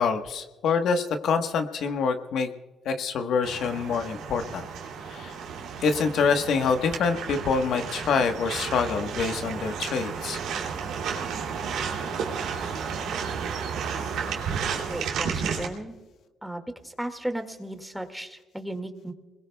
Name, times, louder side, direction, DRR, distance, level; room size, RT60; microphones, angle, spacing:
voice 1, 0.0-2.5 2.8-4.6 5.1-5.3 5.8-10.4, left 5 dB, 75° left, 6 dB, 1.3 m, -26 dB
sound 1, 3.4-15.7, right 6 dB, 90° right, 2.8 m, -32 dB
voice 2, 14.8-16.0 16.4-16.6 17.0-19.1, right 1 dB, 5° right, 6 dB, 2.1 m, -35 dB
29.0 x 21.0 x 2.3 m, 1.3 s
cardioid pair, 90°, 0 cm